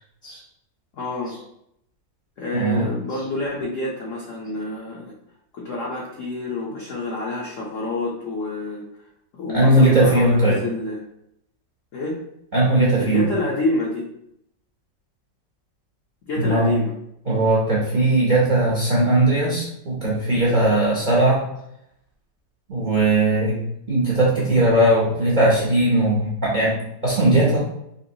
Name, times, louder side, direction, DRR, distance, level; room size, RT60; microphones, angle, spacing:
voice 1, 1.0-1.4 2.4-5.1 5.5-8.9 9.3-11.0 11.9-12.2 13.0-14.1 16.2-16.9, left 2 dB, 70° left, -3 dB, 0.7 m, -27 dB
voice 2, 2.5-2.9 9.5-10.6 12.5-13.3 16.4-16.7 17.3-21.4 22.7-23.6 23.9-27.7, right 1 dB, 65° right, -6 dB, 0.4 m, -19 dB
3.9 x 2.9 x 2.7 m, 0.78 s
omnidirectional pair, 2.0 m